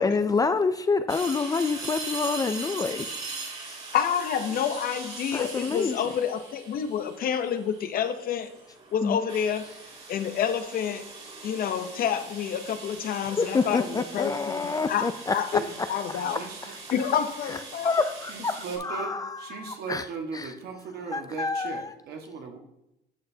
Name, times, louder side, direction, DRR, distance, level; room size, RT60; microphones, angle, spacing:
voice 1, 0.0-3.1 3.7-3.8 5.3-6.0 9.0-9.2 13.3-15.9 16.3-16.5 17.5-17.6 17.8-20.0 20.3-20.5 21.1-21.9, left 4 dB, 20° left, 11 dB, 0.4 m, -27 dB
sound 1, 1.1-18.8, right 3 dB, 40° right, 2.2 m, -41 dB
voice 2, 3.9-8.5 8.9-9.6 10.1-11.1 11.4-15.1 15.3-15.5 15.9-16.4 16.9-17.9, left 8 dB, 60° left, 9 dB, 0.7 m, -28 dB
voice 3, 16.2-16.7 18.3-19.1 19.4-22.6, right 5 dB, 70° right, 3 dB, 1.5 m, -37 dB
10.5 x 6.0 x 2.8 m, 0.84 s
cardioid pair, 110°, 17 cm